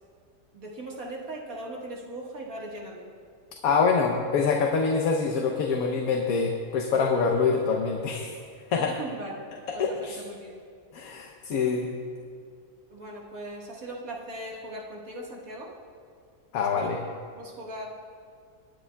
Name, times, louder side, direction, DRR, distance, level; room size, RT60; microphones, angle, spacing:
voice 1, 0.5-3.1 8.7-9.4 9.7-10.5 12.9-15.7 16.6-17.9, right 1 dB, 70° right, -3 dB, 2.0 m, -39 dB
voice 2, 3.6-8.4 8.7-9.0 9.8-10.2 10.9-11.9 16.5-17.0, left 5 dB, 75° left, 1 dB, 1.2 m, -25 dB
21.5 x 9.8 x 2.3 m, 2.1 s
omnidirectional pair, 1.6 m